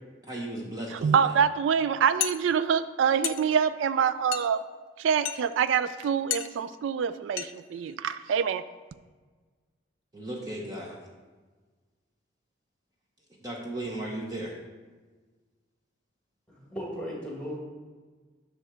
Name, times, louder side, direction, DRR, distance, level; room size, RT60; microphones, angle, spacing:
voice 1, 0.2-1.3 10.1-11.0 13.4-14.5, right 1 dB, 20° right, -2 dB, 0.9 m, -36 dB
voice 2, 1.0-4.6 5.0-8.6, right 7 dB, 80° right, 13 dB, 0.3 m, -25 dB
sound 1, 2.2-2.4 3.2-3.4 4.3-4.5 5.2-5.4 6.3-6.5 7.4-7.5 7.8-7.9 8.3-8.5, left 11 dB, 90° left, 0.5 m, -31 dB
voice 3, 16.5-17.6, equal, 5° left, -3 dB, 1.9 m, -36 dB
9.9 x 3.4 x 6.3 m, 1.4 s
head